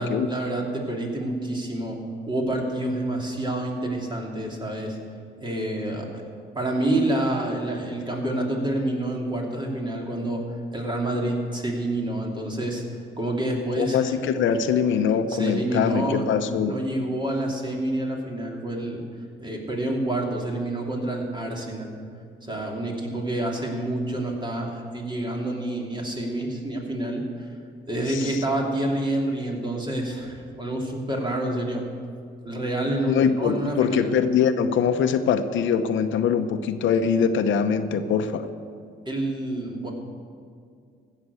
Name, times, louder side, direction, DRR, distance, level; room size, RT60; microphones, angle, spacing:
voice 1, 0.0-2.0 2.3-5.0 5.4-6.2 6.5-10.4 10.7-12.8 13.2-14.1 15.3-16.3 16.6-19.0 19.4-21.9 22.4-27.2 27.9-31.8 32.4-34.1 39.0-39.9, right 1 dB, 25° right, 0 dB, 2.8 m, -28 dB
voice 2, 13.8-16.8 28.1-28.4 33.1-38.5, left 7 dB, 75° left, 9 dB, 0.8 m, -23 dB
15.5 x 6.8 x 8.1 m, 2.2 s
cardioid pair, 90°, 20 cm